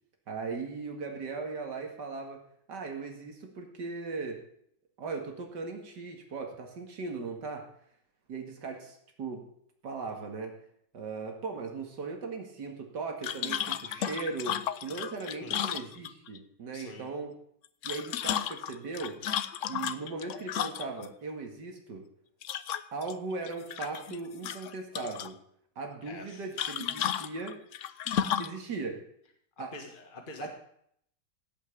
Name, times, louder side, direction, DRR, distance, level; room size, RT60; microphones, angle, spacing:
voice 1, 0.3-2.4 2.7-4.4 5.0-7.7 8.3-9.4 9.8-10.5 10.9-17.3 17.8-19.2 19.7-22.0 22.9-25.4 25.8-27.6 28.4-29.0 29.6-29.7 30.4-30.5, right 4 dB, 80° right, 3 dB, 2.7 m, -38 dB
sound 1, 13.2-16.4 17.6-21.1 22.4-23.1 23.5-24.2 24.4-25.3 26.6-28.6, left 9 dB, 60° left, 0.8 m, -33 dB
voice 2, 15.4-15.8 16.7-17.1 26.0-26.5 27.9-28.4 29.6-30.5, left 3 dB, 30° left, 3 dB, 1.7 m, -46 dB
16.5 x 5.7 x 8.3 m, 0.68 s
omnidirectional pair, 1.8 m